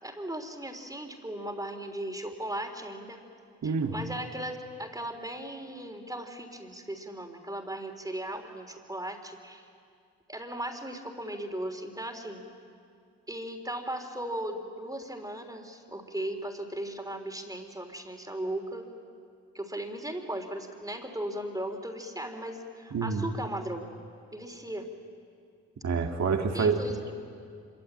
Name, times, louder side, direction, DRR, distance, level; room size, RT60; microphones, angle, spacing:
voice 1, 0.0-3.2 3.6-9.7 10.3-12.5 13.3-18.9 19.5-23.9 24.3-24.9 26.5-27.1, right 1 dB, 10° right, 4 dB, 3.5 m, -37 dB
voice 2, 3.6-3.9 22.9-23.3 25.8-26.8, right 5 dB, 65° right, 4 dB, 2.2 m, -27 dB
25.5 x 23.5 x 8.9 m, 2.3 s
cardioid pair, 70°, 30 cm